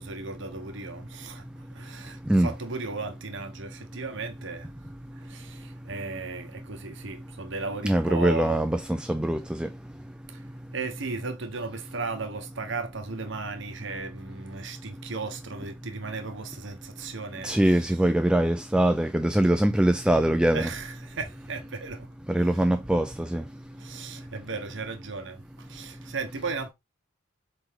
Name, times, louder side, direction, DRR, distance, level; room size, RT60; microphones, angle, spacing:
voice 1, 0.0-1.4 1.7-4.7 5.2-8.7 10.3-10.4 10.7-18.1 20.5-22.1 22.4-22.8 23.8-25.4 25.7-26.7, right 4 dB, 65° right, 1.0 m, -36 dB
voice 2, 7.8-9.7 17.4-20.7 22.3-23.1 23.3-23.4, right 1 dB, 5° right, 0.3 m, -23 dB
7.9 x 3.4 x 3.6 m
head